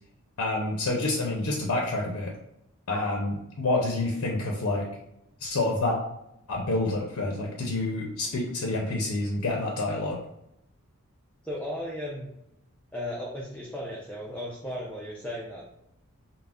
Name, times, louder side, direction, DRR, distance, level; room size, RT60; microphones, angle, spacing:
voice 1, 0.4-2.3 2.9-4.9 5.4-6.0 6.5-10.2, left 2 dB, 65° left, -1 dB, 0.5 m, -28 dB
voice 2, 11.4-12.3 12.9-15.7, equal, 5° left, -6 dB, 0.3 m, -35 dB
2.3 x 2.0 x 3.4 m, 0.83 s
head